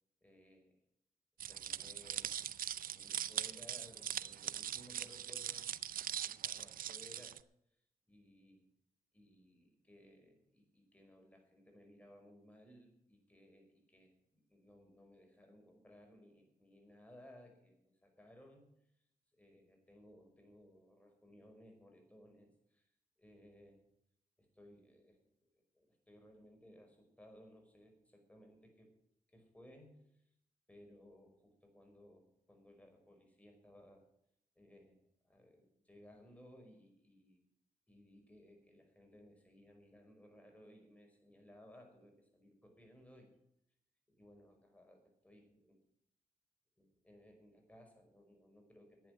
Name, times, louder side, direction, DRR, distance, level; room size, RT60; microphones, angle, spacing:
voice 1, 0.2-0.8 1.5-2.5 2.8-5.7 6.2-7.4 8.1-8.7 9.1-18.7 19.3-22.9 23.2-23.8 24.4-25.2 25.5-28.9 29.3-30.2 30.7-34.0 34.6-35.0 35.2-37.4 37.9-43.3 44.1-45.8 46.8-49.1, equal, 10° left, 3 dB, 5.3 m, -61 dB
sound 1, 1.4-7.4, right 10 dB, 70° right, 0.5 m, -41 dB
11.0 x 9.0 x 9.0 m, 0.75 s
cardioid pair, 75°, 15 cm